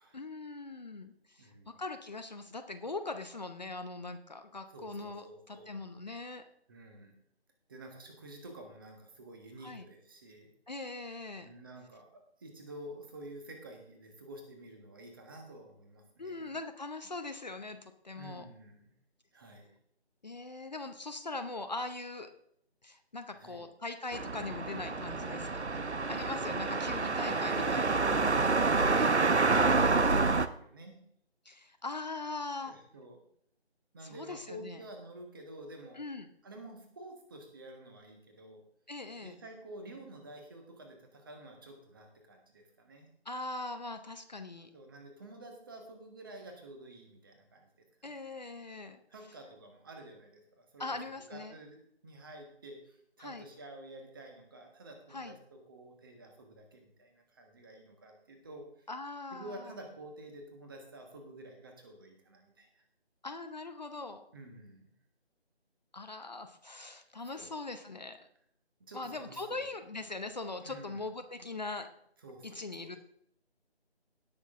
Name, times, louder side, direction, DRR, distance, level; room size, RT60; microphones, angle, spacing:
voice 1, 0.1-1.5 1.8-6.4 9.6-9.8 10.7-11.5 16.2-18.4 20.2-22.3 22.8-25.6 26.0-27.8 28.8-29.1 31.5-32.7 34.0-34.8 35.9-36.3 38.9-39.4 43.3-44.7 48.0-49.0 50.8-51.5 53.2-53.5 55.1-55.3 58.9-59.7 63.2-64.2 65.9-68.3 68.9-71.9 72.4-73.0, left 3 dB, 40° left, 8 dB, 0.8 m, -41 dB
voice 2, 1.4-1.8 4.7-5.8 6.7-7.1 7.7-10.5 11.4-16.5 18.1-18.9 19.3-19.7 23.3-23.7 26.2-26.8 27.6-28.9 29.2-31.0 32.6-33.2 33.9-36.0 36.4-38.6 39.2-43.1 44.7-47.7 48.0-48.2 49.1-50.9 51.3-58.9 59.3-62.8 64.3-64.9 67.3-67.6 68.9-69.7 70.6-71.1 72.2-72.9, right 1 dB, 20° right, 3 dB, 1.5 m, -49 dB
sound 1, 24.1-30.5, right 3 dB, 90° right, 0.9 m, -28 dB
17.5 x 6.4 x 3.6 m, 0.68 s
figure-of-eight pair, 160°, 33 cm